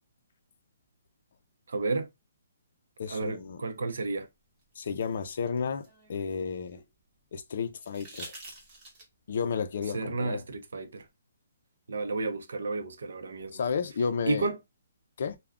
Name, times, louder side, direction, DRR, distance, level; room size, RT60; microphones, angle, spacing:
voice 1, 1.7-2.1 3.1-4.3 9.9-11.1 11.9-13.6 14.3-14.6, right 3 dB, 70° right, 0.6 m, -32 dB
voice 2, 3.0-3.6 4.8-6.8 7.3-8.4 9.3-10.5 13.5-14.5 15.2-15.4, left 6 dB, 45° left, 0.4 m, -32 dB
sound 1, 4.6-6.9 7.8-9.3 11.0-11.1, right 2 dB, 15° right, 0.8 m, -48 dB
2.3 x 2.1 x 3.5 m
hypercardioid pair, 175°, 0 cm